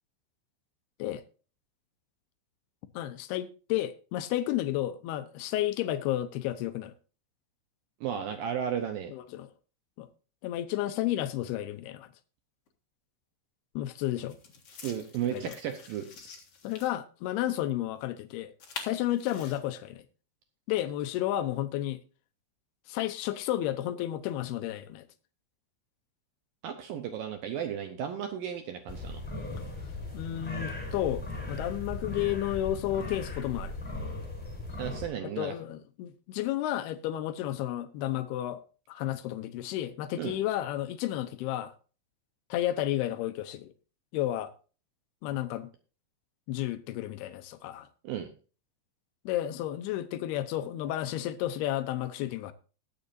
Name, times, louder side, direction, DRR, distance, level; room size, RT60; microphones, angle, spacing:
voice 1, 2.9-6.9 9.1-9.5 10.0-10.1 10.4-12.1 13.8-14.4 15.2-15.5 16.6-20.0 20.7-22.0 22.9-25.1 30.1-33.7 35.2-38.6 38.9-41.7 42.5-43.7 44.1-44.5 45.2-45.7 46.5-47.9 49.3-52.5, left 13 dB, 85° left, 2.2 m, -32 dB
voice 2, 8.0-9.1 14.8-16.1 26.6-29.2 34.8-35.5 40.2-40.4 48.0-48.3, right 9 dB, 80° right, 2.0 m, -34 dB
sound 1, 12.7-12.8 14.3-16.9 18.6-19.6, left 5 dB, 60° left, 1.5 m, -46 dB
sound 2, 28.9-35.1, left 2 dB, ahead, 3.2 m, -38 dB
20.5 x 7.2 x 2.6 m
omnidirectional pair, 5.4 m